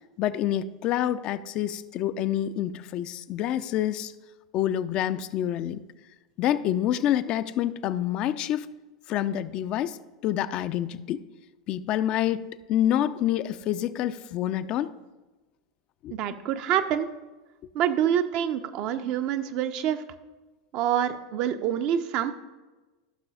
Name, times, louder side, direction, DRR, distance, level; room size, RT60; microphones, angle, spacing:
voice 1, 0.2-4.1 4.5-5.8 6.4-8.7 9.1-10.0 10.2-11.2 11.7-14.9 16.0-16.1, left 11 dB, 45° left, 12 dB, 0.4 m, -27 dB
voice 2, 16.1-17.1 17.7-20.0 20.7-22.3, right 10 dB, 50° right, 9 dB, 0.5 m, -26 dB
15.5 x 6.1 x 2.4 m, 1.2 s
figure-of-eight pair, 85°, 2 cm